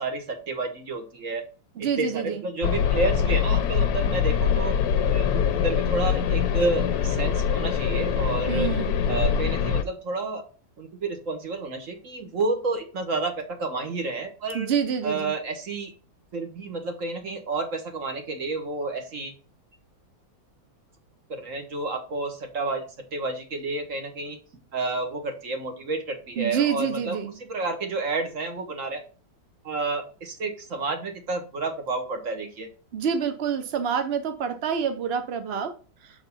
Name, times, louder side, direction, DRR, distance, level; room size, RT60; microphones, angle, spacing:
voice 1, 0.0-1.5 1.7-4.8 5.1-8.7 9.1-10.4 10.8-14.7 15.0-15.9 16.3-19.3 21.3-22.8 23.1-24.4 24.7-29.0 29.6-32.7, right 3 dB, 45° right, 1.6 m, -30 dB
voice 2, 1.8-2.4 8.5-8.9 14.5-15.3 26.4-27.3 32.9-35.7, right 7 dB, 65° right, 0.6 m, -27 dB
sound 1, 2.6-9.8, left 7 dB, 65° left, 1.0 m, -23 dB
6.8 x 4.0 x 5.5 m
omnidirectional pair, 2.1 m